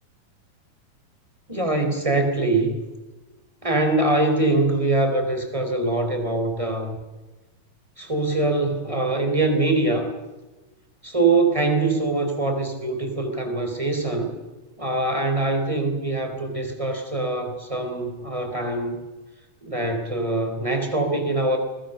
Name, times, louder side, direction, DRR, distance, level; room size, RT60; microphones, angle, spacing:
voice 1, 1.5-2.8 3.6-7.0 8.0-10.1 11.0-14.3 14.8-19.0 19.6-21.6, right 2 dB, 10° right, 5 dB, 3.5 m, -23 dB
29.5 x 21.0 x 6.7 m, 1.1 s
omnidirectional pair, 4.5 m